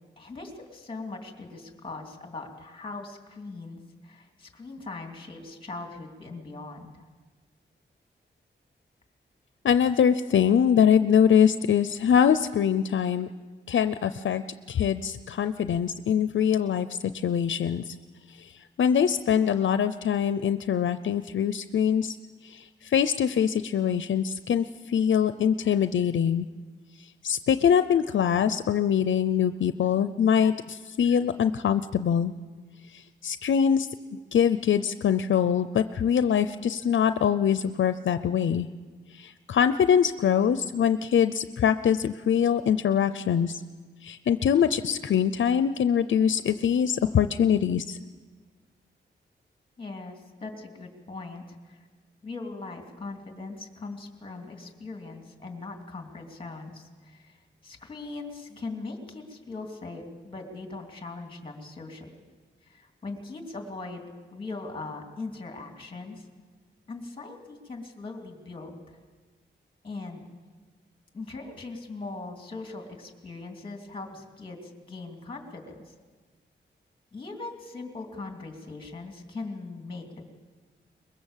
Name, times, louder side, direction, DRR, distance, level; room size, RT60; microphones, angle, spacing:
voice 1, 0.2-7.0 49.8-51.8 52.2-62.1 62.6-66.3 66.9-69.0 69.8-70.2 71.1-75.9 77.1-80.3, left 3 dB, 25° left, 3 dB, 2.7 m, -40 dB
voice 2, 9.6-13.3 13.7-14.4 14.7-17.9 18.3-22.2 22.4-26.5 27.0-32.3 32.9-38.7 39.1-43.6 44.0-48.0, left 8 dB, 80° left, 12 dB, 0.6 m, -23 dB
23.0 x 21.5 x 7.3 m, 1.4 s
wide cardioid pair, 180°, 19 cm